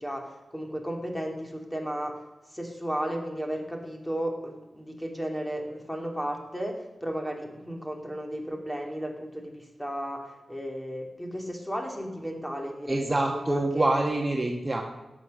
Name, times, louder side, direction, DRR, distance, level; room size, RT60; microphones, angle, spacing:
voice 1, 0.0-2.2 2.5-13.0 13.3-13.9, equal, 5° left, 2 dB, 2.4 m, -34 dB
voice 2, 12.9-14.8, right 2 dB, 25° right, 2 dB, 1.1 m, -26 dB
16.5 x 6.3 x 6.4 m, 1.0 s
cardioid pair, 70°, 0 cm